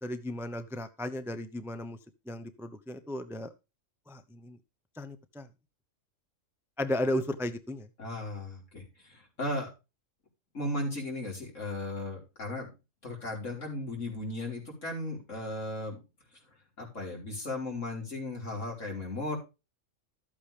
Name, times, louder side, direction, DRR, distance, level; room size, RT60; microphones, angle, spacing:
voice 1, 0.0-2.0 2.3-3.5 4.1-4.6 5.0-5.5 6.8-7.9, left 1 dB, ahead, 10 dB, 0.7 m, -34 dB
voice 2, 8.0-9.7 10.5-12.7 13.0-16.0 16.8-19.4, left 1 dB, 65° left, -1 dB, 5.0 m, -36 dB
13.5 x 8.6 x 3.4 m, 0.28 s
omnidirectional pair, 1.4 m